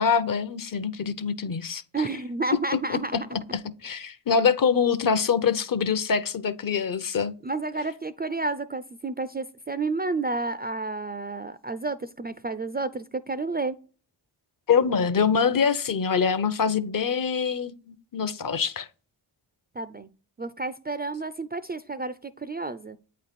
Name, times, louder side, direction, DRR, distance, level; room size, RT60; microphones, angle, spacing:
voice 1, 0.0-2.1 2.9-3.0 3.3-7.3 14.7-18.9, left 6 dB, 45° left, 0.7 m, -25 dB
voice 2, 1.9-3.2 7.4-13.8 19.8-20.1 20.4-23.0, right 3 dB, 20° right, 0.4 m, -30 dB
8.4 x 3.2 x 4.2 m
supercardioid pair, 45°, 47 cm